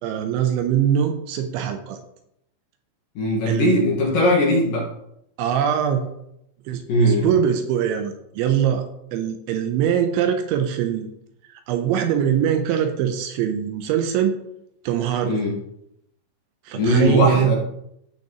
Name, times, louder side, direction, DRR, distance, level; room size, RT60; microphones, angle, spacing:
voice 1, 0.0-2.0 3.5-3.7 5.4-6.0 6.7-8.9 9.1-11.1 11.5-14.4 14.8-15.3 16.7-17.5, right 9 dB, 80° right, 6 dB, 3.0 m, -22 dB
voice 2, 3.2-4.9 6.9-7.3 15.2-15.5 16.7-17.5, equal, 60° left, -3 dB, 2.7 m, -19 dB
16.5 x 5.8 x 3.0 m, 0.79 s
omnidirectional pair, 5.6 m